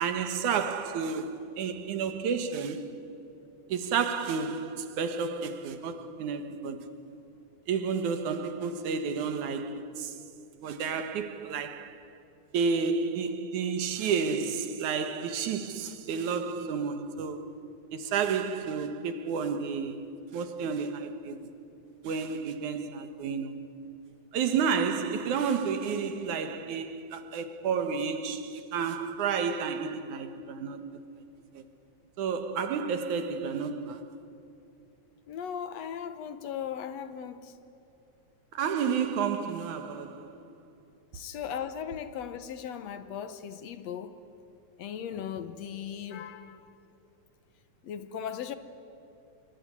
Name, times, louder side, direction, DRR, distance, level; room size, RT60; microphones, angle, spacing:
voice 1, 0.0-3.0 3.7-6.9 7.7-10.2 10.6-12.0 12.5-17.6 17.9-21.5 22.0-23.7 24.3-31.0 31.5-31.6 32.2-34.1 38.5-40.4, right 6 dB, 90° right, 2.9 m, -31 dB
voice 2, 35.3-37.6 41.1-44.2 44.8-46.7 47.8-48.6, left 8 dB, 70° left, 2.1 m, -37 dB
26.5 x 23.5 x 9.7 m
omnidirectional pair, 3.4 m